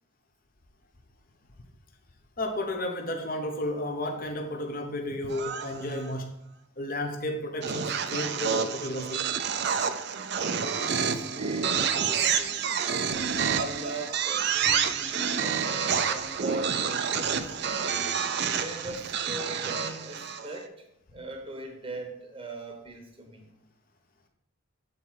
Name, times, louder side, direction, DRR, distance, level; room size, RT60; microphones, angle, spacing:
voice 1, 2.4-6.4 6.8-9.3, left 1 dB, 40° left, 3 dB, 0.8 m, -32 dB
sound 1, 5.3-6.1 7.6-20.6, right 7 dB, 50° right, 0.5 m, -29 dB
voice 2, 10.3-18.1 18.5-20.9 21.1-23.5, right 2 dB, 25° right, 2 dB, 0.9 m, -40 dB
7.7 x 4.1 x 4.6 m, 0.76 s
head